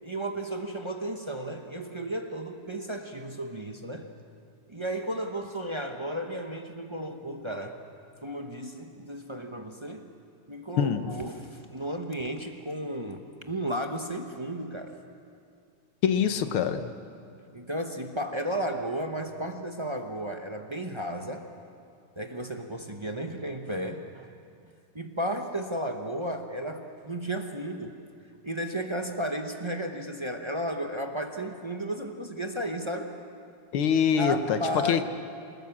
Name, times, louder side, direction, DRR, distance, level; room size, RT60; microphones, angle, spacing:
voice 1, 0.0-4.1 4.7-7.8 8.2-10.1 10.5-15.0 17.5-21.5 22.2-24.3 24.9-28.0 28.4-33.2 34.2-35.0, right 1 dB, 25° right, 4 dB, 0.6 m, -34 dB
voice 2, 10.8-11.1 16.0-16.9 33.7-34.6 34.9-35.0, left 7 dB, 75° left, 9 dB, 1.8 m, -24 dB
28.0 x 19.5 x 7.4 m, 2.4 s
omnidirectional pair, 2.4 m